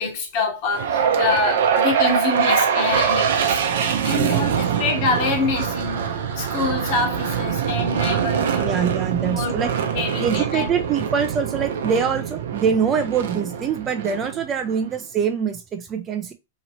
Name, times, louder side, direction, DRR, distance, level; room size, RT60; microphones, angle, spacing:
voice 1, 0.0-8.7 9.2-9.6 9.9-10.7, left 4 dB, 45° left, 1.1 m, -26 dB
sound 1, 0.7-14.9, right 7 dB, 70° right, 0.7 m, -23 dB
voice 2, 8.6-9.7 10.2-16.3, right 7 dB, 25° right, 0.4 m, -24 dB
2.9 x 2.9 x 2.9 m
hypercardioid pair, 140°, 0 cm